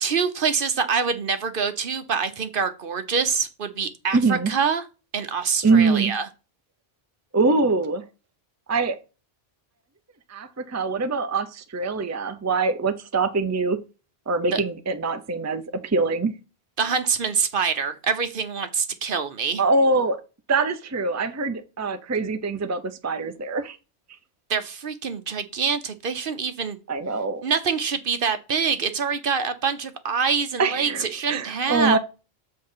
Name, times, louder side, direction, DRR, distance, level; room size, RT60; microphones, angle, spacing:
voice 1, 0.0-4.8 5.1-6.2 14.5-14.6 16.8-19.6 24.5-26.8 27.4-32.0, right 6 dB, 60° right, 1.0 m, -25 dB
voice 2, 4.1-4.5 5.6-6.1 7.3-8.0 8.7-9.0 10.3-13.8 14.3-16.3 19.6-20.2 20.5-23.8 26.9-27.4 30.6-32.0, right 3 dB, 20° right, 0.6 m, -23 dB
7.5 x 3.9 x 5.6 m
omnidirectional pair, 1.1 m